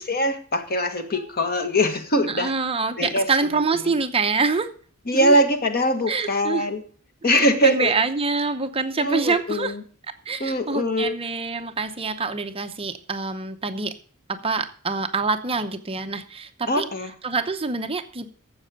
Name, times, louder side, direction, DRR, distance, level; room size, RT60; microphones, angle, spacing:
voice 1, 0.1-2.5 3.0-3.3 5.1-6.8 7.2-7.9 9.0-9.7 10.4-11.2 16.7-17.1, equal, 45° left, 7 dB, 1.6 m, -22 dB
voice 2, 2.3-4.7 5.1-5.4 6.1-6.7 7.4-9.7 10.3-14.0 14.3-16.9 17.2-18.3, right 4 dB, 25° right, 8 dB, 0.8 m, -26 dB
12.5 x 7.8 x 6.4 m, 0.43 s
head